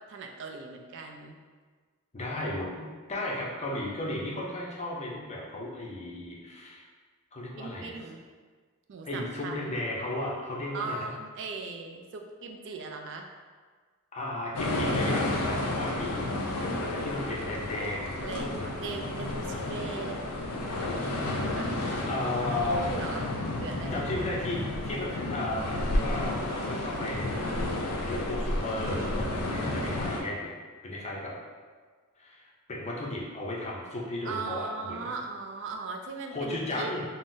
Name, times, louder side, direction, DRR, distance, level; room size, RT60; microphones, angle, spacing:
voice 1, 0.1-1.4 7.6-8.2 8.9-9.8 10.7-13.3 18.2-20.2 21.4-22.1 22.5-23.3 23.6-24.0 34.2-36.9, right 4 dB, 55° right, 3 dB, 0.3 m, -39 dB
voice 2, 2.1-6.8 7.3-7.9 9.0-11.1 14.1-16.3 16.9-18.7 22.1-22.9 23.9-27.7 28.0-30.5 30.8-31.3 32.2-32.4 32.7-35.1 36.3-37.0, left 1 dB, 30° left, -3 dB, 0.5 m, -34 dB
sound 1, 14.5-30.2, left 1 dB, 90° left, 0.4 m, -31 dB
3.7 x 2.0 x 2.6 m, 1.5 s
head